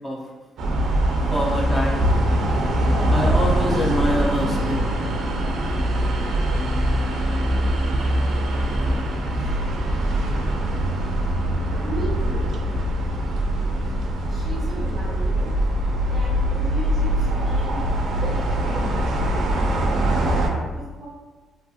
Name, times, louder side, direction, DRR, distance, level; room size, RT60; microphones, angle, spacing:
sound 1, 0.6-20.5, right 1 dB, 60° right, 0.4 m, -22 dB
voice 1, 1.3-2.1 3.1-4.9, equal, 15° left, -3 dB, 0.4 m, -25 dB
voice 2, 11.8-12.5 14.3-15.5 16.0-20.2 20.4-21.1, right 1 dB, 10° right, -8 dB, 1.0 m, -37 dB
2.7 x 2.5 x 2.3 m, 1.3 s
cardioid pair, 160°, 0 cm